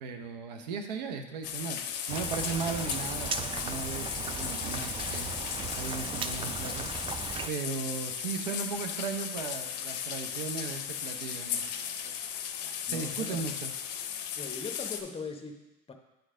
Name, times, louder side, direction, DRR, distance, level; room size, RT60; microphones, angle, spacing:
voice 1, 0.0-5.3 5.6-6.9 7.5-12.1 12.6-13.7, right 5 dB, 90° right, 6 dB, 0.7 m, -37 dB
sound 1, 1.4-15.0, left 8 dB, 85° left, 0.5 m, -36 dB
Rain, 2.1-7.5, right 6 dB, 25° right, 0.4 m, -37 dB
voice 2, 12.9-13.4 14.4-15.9, left 4 dB, 25° left, 4 dB, 0.9 m, -40 dB
9.0 x 3.3 x 3.7 m, 0.96 s
hypercardioid pair, 75°, 21 cm